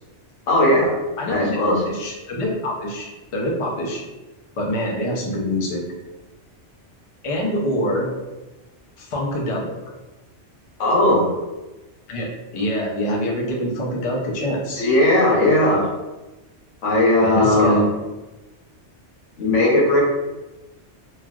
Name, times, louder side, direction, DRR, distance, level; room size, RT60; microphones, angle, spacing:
voice 1, 0.5-0.9 1.3-1.8 10.8-11.3 14.8-15.8 16.8-17.8 19.4-20.0, left 1 dB, 90° left, -4 dB, 1.3 m, -17 dB
voice 2, 1.2-1.6 1.9-4.0 4.6-5.8 7.2-8.1 9.0-9.7 12.1-14.9 17.2-17.9, equal, 45° left, -2 dB, 0.4 m, -25 dB
3.2 x 2.3 x 2.4 m, 1.1 s
omnidirectional pair, 1.2 m